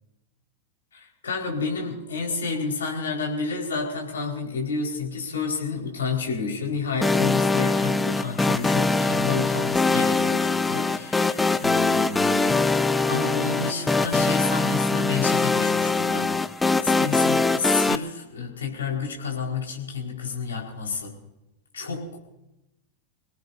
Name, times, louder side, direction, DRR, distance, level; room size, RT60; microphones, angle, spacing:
voice 1, 0.9-12.5 13.1-16.3 16.6-21.1 21.7-22.2, left 5 dB, 70° left, -1 dB, 4.7 m, -30 dB
sound 1, 7.0-18.0, left 3 dB, 10° left, 0.6 m, -22 dB
26.5 x 18.0 x 2.7 m, 0.93 s
figure-of-eight pair, 90°, 0 cm